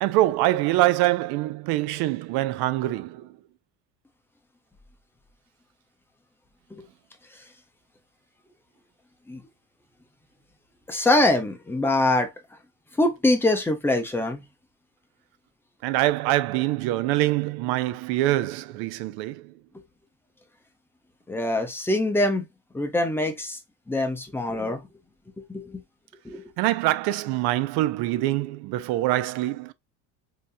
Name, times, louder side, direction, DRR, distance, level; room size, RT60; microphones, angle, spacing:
voice 1, 0.0-3.3 15.8-19.5 26.6-29.7, right 16 dB, 75° right, 0.5 m, -24 dB
voice 2, 10.9-12.3 13.0-14.4 21.3-22.4 22.7-23.6 23.9-24.8 25.4-25.8 26.2-26.4, left 2 dB, 5° left, 0.6 m, -23 dB
3.5 x 2.8 x 2.6 m
cardioid pair, 135°, 39 cm